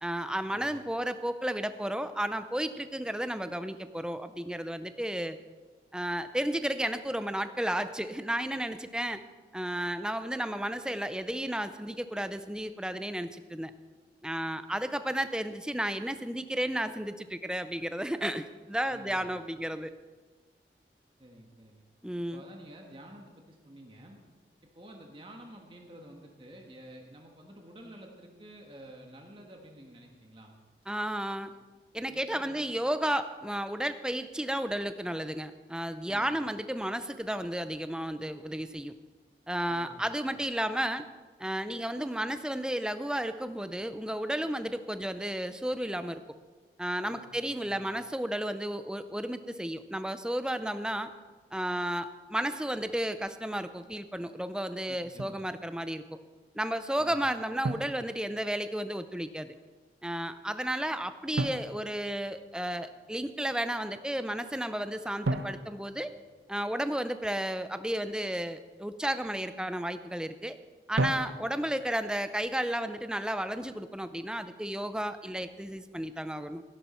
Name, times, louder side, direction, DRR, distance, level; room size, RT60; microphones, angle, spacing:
voice 1, 0.0-5.4 5.9-9.2 9.5-13.7 14.2-19.9 22.0-22.4 30.9-31.5 31.9-38.9 39.5-41.1 41.4-46.2 46.8-51.1 51.5-56.0 56.6-59.5 60.0-66.1 66.5-70.6 70.9-76.6, right 1 dB, 5° right, 11 dB, 0.5 m, -33 dB
voice 2, 18.9-19.4 21.2-21.8 22.3-24.2 24.7-30.5 31.5-31.6 32.1-32.7 36.1-36.6 39.7-40.3 47.0-47.9 54.9-55.4 57.0-57.3, right 1 dB, 30° right, 1 dB, 1.5 m, -50 dB
Drum, 55.2-55.5 57.6-58.8 61.4-62.8 65.2-67.0 71.0-71.9, right 2 dB, 85° right, 0.7 m, -35 dB
15.5 x 11.0 x 4.3 m, 1.4 s
head